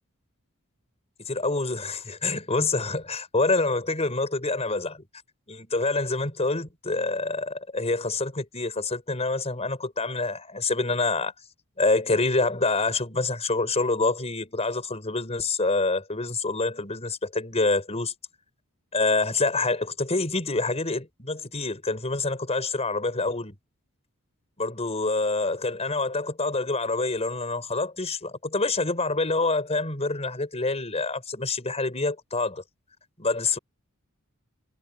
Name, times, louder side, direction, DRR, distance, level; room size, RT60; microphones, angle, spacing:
voice 1, 1.2-5.0 5.5-11.3 11.8-18.1 18.9-23.5 24.6-32.6 33.2-33.6, left 3 dB, 30° left, 5.0 m, -26 dB
head